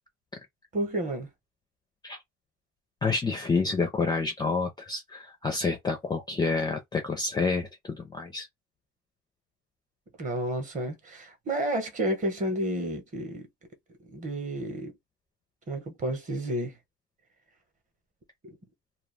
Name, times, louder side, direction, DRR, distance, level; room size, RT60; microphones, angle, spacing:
voice 1, 0.7-1.3 10.2-13.5 14.0-14.9 15.7-16.8 18.4-18.6, right 1 dB, 25° right, 0.9 m, -31 dB
voice 2, 3.0-8.5, left 4 dB, 15° left, 0.4 m, -28 dB
2.3 x 2.3 x 3.2 m
cardioid pair, 135°, 31 cm